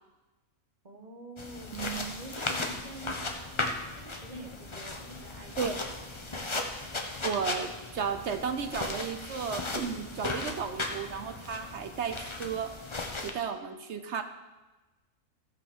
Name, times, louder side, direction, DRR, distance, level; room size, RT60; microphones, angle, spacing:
voice 1, 0.8-1.8 2.1-5.9, right 2 dB, 30° right, 3 dB, 1.4 m, -47 dB
sound 1, 1.4-13.3, left 2 dB, 25° left, 0.8 m, -36 dB
voice 2, 1.7-2.1 5.6-5.8 7.2-12.7 13.2-14.2, right 6 dB, 55° right, 8 dB, 1.0 m, -34 dB
15.0 x 5.4 x 6.3 m, 1.1 s
omnidirectional pair, 1.5 m